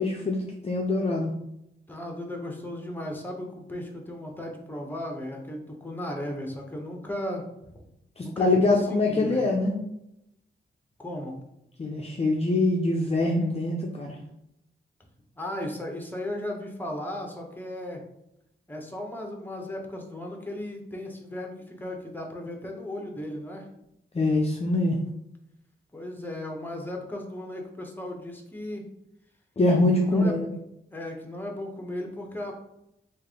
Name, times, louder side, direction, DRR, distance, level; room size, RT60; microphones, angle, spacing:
voice 1, 0.0-1.3 8.2-9.7 11.8-14.2 24.1-25.0 29.6-30.5, left 2 dB, 30° left, 0 dB, 0.5 m, -24 dB
voice 2, 1.9-7.4 8.2-9.5 11.0-11.4 15.4-18.0 18.7-23.7 25.9-28.9 30.0-30.6 30.9-32.5, left 1 dB, 10° left, 1 dB, 0.8 m, -36 dB
3.3 x 2.4 x 3.6 m, 0.82 s
cardioid pair, 60°, 21 cm